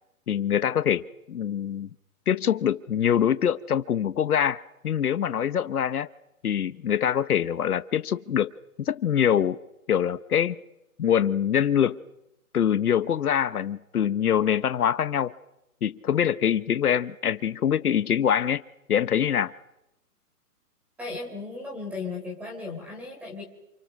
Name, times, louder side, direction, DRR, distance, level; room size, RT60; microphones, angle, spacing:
voice 1, 0.3-1.9 2.3-6.1 6.4-8.5 8.8-9.6 9.9-10.6 11.0-12.0 12.5-15.3 15.8-18.6 18.9-19.5, left 9 dB, 75° left, 13 dB, 1.1 m, -24 dB
voice 2, 21.0-23.4, left 3 dB, 5° right, 0 dB, 3.8 m, -36 dB
28.0 x 27.5 x 6.5 m, 0.86 s
hypercardioid pair, 175°, 45 cm